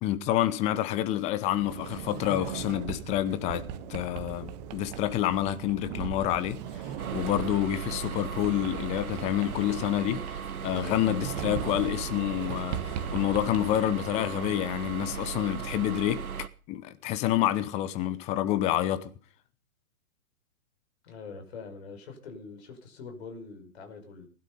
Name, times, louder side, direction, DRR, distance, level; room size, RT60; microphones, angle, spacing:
voice 1, 0.0-3.6 3.9-16.2 16.7-19.1, left 13 dB, 15° left, 0.8 m, -28 dB
Sliding door, 1.5-13.8, right 9 dB, 30° right, 1.7 m, -39 dB
sound 1, 7.0-16.5, right 7 dB, 75° right, 1.2 m, -37 dB
voice 2, 21.0-24.3, left 4 dB, 45° left, 5.9 m, -44 dB
19.5 x 12.0 x 5.5 m
figure-of-eight pair, 120°, 43 cm